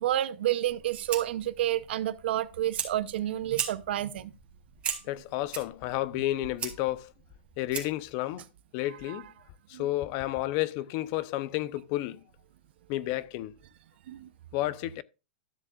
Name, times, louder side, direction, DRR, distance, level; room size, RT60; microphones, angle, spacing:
voice 1, 0.0-4.3 9.1-9.2 9.7-9.9 14.1-14.3, right 13 dB, 65° right, 0.7 m, -30 dB
Fire, 0.7-8.1, right 7 dB, 20° right, 2.3 m, -39 dB
voice 2, 5.1-7.1 7.6-8.4 8.7-9.3 9.7-12.2 12.9-13.5 14.5-15.0, left 16 dB, 40° left, 0.7 m, -31 dB
13.0 x 7.3 x 2.4 m
hypercardioid pair, 145°, 6 cm